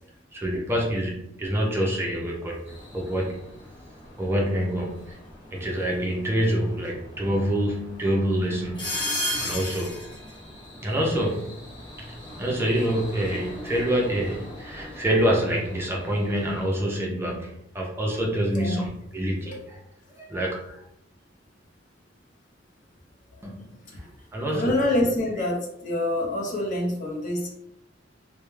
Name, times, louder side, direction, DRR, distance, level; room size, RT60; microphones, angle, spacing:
voice 1, 0.3-2.6 2.9-3.4 4.2-5.1 5.5-10.0 10.8-11.6 12.4-19.8 20.1-20.8 23.4-24.7, equal, 15° right, -2 dB, 0.4 m, -26 dB
sound 1, 2.7-16.6, left 1 dB, 25° left, 1.0 m, -38 dB
voice 2, 18.5-18.9 24.5-27.5, left 1 dB, 45° left, -1 dB, 0.6 m, -26 dB
2.2 x 2.1 x 3.0 m, 0.77 s
head